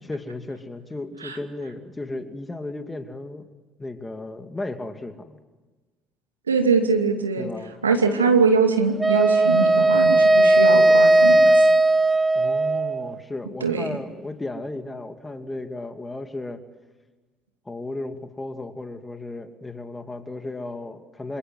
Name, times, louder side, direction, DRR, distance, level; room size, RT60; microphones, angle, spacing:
voice 1, 0.0-3.5 3.8-5.4 7.4-7.8 12.3-16.6 17.6-21.4, left 2 dB, 15° left, 7 dB, 2.6 m, -34 dB
voice 2, 6.5-7.5 7.8-11.7 13.6-13.8, right 5 dB, 85° right, 4 dB, 2.5 m, -22 dB
Wind instrument woodwind instrument, 9.0-13.1, right 2 dB, 15° right, 1.3 m, -17 dB
27.0 x 26.5 x 8.0 m, 1.3 s
figure-of-eight pair, 55°, 0 cm